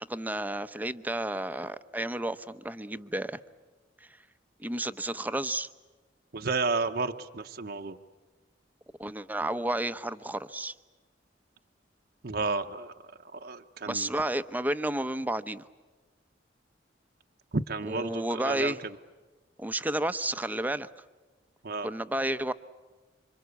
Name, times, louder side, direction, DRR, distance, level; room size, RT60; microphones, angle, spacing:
voice 1, 0.1-3.4 4.6-5.7 9.0-10.7 13.8-15.6 17.8-18.8 19.6-20.9 21.8-22.5, right 1 dB, 10° right, 11 dB, 0.8 m, -31 dB
voice 2, 6.3-8.0 12.2-12.9 13.3-14.1 17.5-18.7 21.6-21.9, right 3 dB, 55° right, 5 dB, 0.9 m, -31 dB
27.5 x 25.5 x 8.3 m, 1.3 s
head